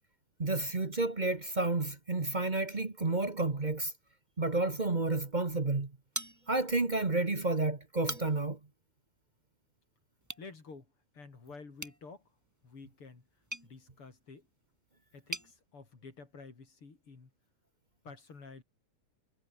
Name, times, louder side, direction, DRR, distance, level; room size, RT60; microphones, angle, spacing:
voice 1, 0.4-3.9 4.4-5.9 6.5-8.6, right 2 dB, 30° right, 0.8 m, -31 dB
sound 1, 6.1-6.9 7.3-7.4 7.8-8.6 10.2-10.5 11.8-15.5, right 1 dB, 5° right, 2.7 m, -44 dB
voice 2, 10.4-10.9 11.1-12.2 12.6-13.2 13.6-14.5 15.1-17.3 18.0-18.6, left 4 dB, 45° left, 4.6 m, -50 dB
omnidirectional pair, 3.4 m